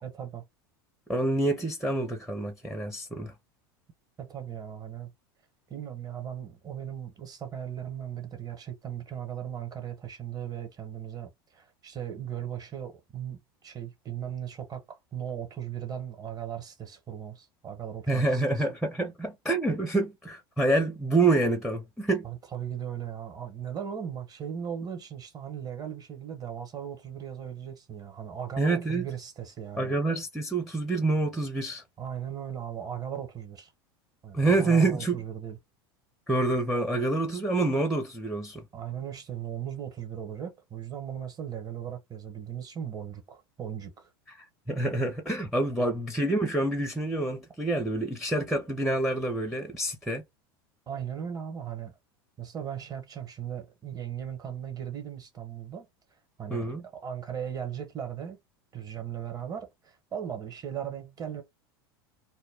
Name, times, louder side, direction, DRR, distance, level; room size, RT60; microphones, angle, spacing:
voice 1, 0.0-0.4 4.2-5.1 5.7-18.6 22.2-30.0 32.0-33.7 34.2-35.6 38.7-44.1 45.7-45.8 50.9-51.9 52.4-55.9 56.4-58.4 58.7-61.4, right 9 dB, 30° right, 1.1 m, -37 dB
voice 2, 1.1-3.3 18.1-22.3 28.6-29.1 29.8-31.8 34.3-35.2 36.3-38.6 44.7-50.2 56.5-56.8, right 2 dB, ahead, 0.6 m, -27 dB
2.2 x 2.1 x 3.5 m
hypercardioid pair, 95°, 13 cm